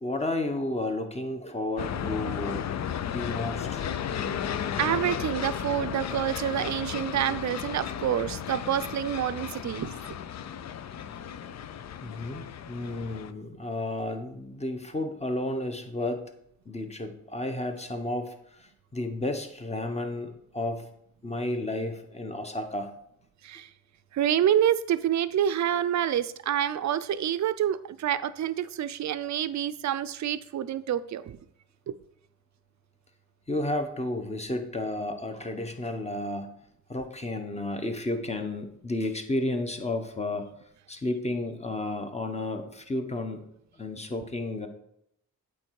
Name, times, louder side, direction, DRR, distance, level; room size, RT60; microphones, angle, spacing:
voice 1, 0.0-2.7 3.1-3.9 12.0-16.3 16.6-20.9 21.2-22.9 33.5-36.5 36.9-40.5 40.9-43.5 43.7-44.7, left 2 dB, 20° left, 6 dB, 1.1 m, -32 dB
sound 1, 1.8-13.3, left 8 dB, 55° left, 0.5 m, -34 dB
voice 2, 4.8-10.0 23.4-23.7 24.1-31.4 31.9-32.0, right 10 dB, 55° right, 13 dB, 0.5 m, -27 dB
8.6 x 3.3 x 4.7 m, 0.73 s
cardioid pair, 65°, 33 cm